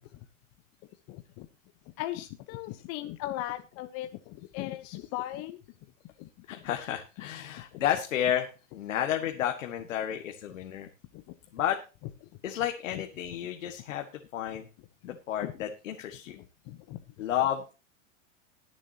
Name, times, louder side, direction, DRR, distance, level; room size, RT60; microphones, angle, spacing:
voice 1, 1.1-1.5 2.0-5.6 6.2-6.3 15.4-15.5 16.7-17.0, left 15 dB, 40° left, 8 dB, 1.0 m, -37 dB
voice 2, 6.5-10.9 11.5-11.8 12.4-14.0 14.3-14.7 15.0-16.4 17.2-17.7, left 10 dB, 90° left, 4 dB, 1.9 m, -31 dB
21.0 x 7.5 x 2.9 m, 0.32 s
supercardioid pair, 140°, 38 cm